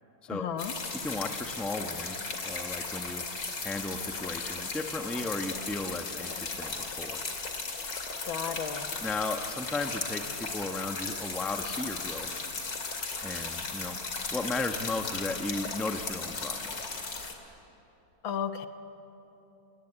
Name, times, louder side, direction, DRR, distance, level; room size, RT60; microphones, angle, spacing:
voice 1, 0.3-0.7 8.3-9.0 18.2-18.7, left 8 dB, 80° left, 8 dB, 2.0 m, -34 dB
sound 1, 0.6-17.3, left 4 dB, 60° left, 3.2 m, -36 dB
voice 2, 0.9-3.2 3.6-7.2 9.0-12.3 13.2-14.0 14.3-16.9, left 2 dB, ahead, 5 dB, 0.7 m, -35 dB
28.5 x 20.0 x 10.0 m, 3.0 s
omnidirectional pair, 2.1 m